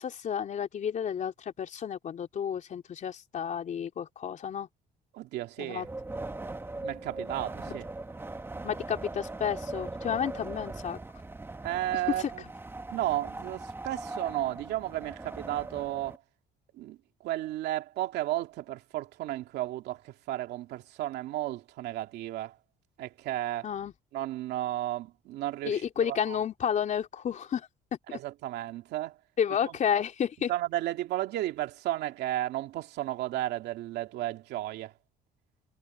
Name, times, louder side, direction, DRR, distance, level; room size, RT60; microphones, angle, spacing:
voice 1, 0.0-4.7 5.6-5.8 8.6-11.0 12.1-12.3 23.6-23.9 25.6-27.7 28.1-28.2 29.4-30.5, left 8 dB, 45° left, 3.4 m, -31 dB
voice 2, 5.1-5.9 6.8-7.9 11.6-12.4 12.9-16.2 16.8-17.0 17.2-22.6 23.0-23.7 24.1-26.4 28.1-29.2 29.6-29.7 30.5-34.9, right 14 dB, 80° right, 2.5 m, -33 dB
Wind, 5.8-16.2, right 2 dB, 15° right, 1.8 m, -40 dB
cardioid pair, 110°, 17 cm